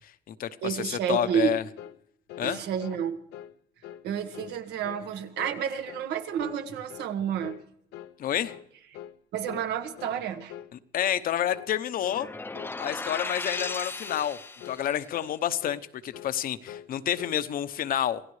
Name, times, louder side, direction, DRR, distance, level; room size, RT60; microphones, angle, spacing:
voice 1, 0.0-1.6 2.4-2.6 8.2-8.5 10.7-12.3 12.8-14.4 14.6-18.2, left 10 dB, 60° left, 13 dB, 0.9 m, -29 dB
voice 2, 0.6-1.6 2.4-3.2 4.0-7.6 9.3-10.5, right 8 dB, 80° right, 8 dB, 1.6 m, -30 dB
sound 1, 1.3-1.5 1.8-2.0 2.3-2.5 2.8-3.0 3.3-3.5 3.8-4.0 4.3-4.6 4.8-5.1 5.4-5.6 5.9-6.1 6.4-6.6 6.9-7.1 7.4-7.6 7.9-8.2 8.4-8.7 8.9-9.2 9.5-9.7 10.0-10.2 10.5-10.7 11.0-11.2 11.5-11.7 12.0-12.3 12.5-12.8 13.1-13.3 13.6-13.8 14.1-14.3 14.6-14.8 15.1-15.3 15.6-15.9 16.1-16.4 16.7-16.9 17.2-17.4, left 11 dB, 85° left, 0.7 m, -44 dB
sound 2, 12.1-14.9, left 3 dB, 10° left, 0.7 m, -36 dB
27.0 x 16.0 x 3.3 m, 0.71 s
cardioid pair, 110°, 17 cm